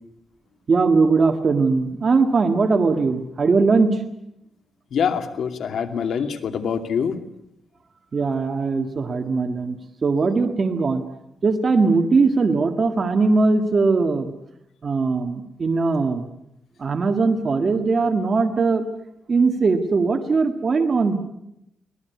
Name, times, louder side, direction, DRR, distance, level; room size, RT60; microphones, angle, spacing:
voice 1, 0.7-4.0 8.1-11.0 11.4-14.3 14.8-16.3 16.8-18.9 19.3-21.2, right 4 dB, 40° right, 5 dB, 1.8 m, -20 dB
voice 2, 4.9-7.2, left 7 dB, 75° left, 6 dB, 2.5 m, -25 dB
24.0 x 18.5 x 9.5 m, 0.84 s
cardioid pair, 115°, 0 cm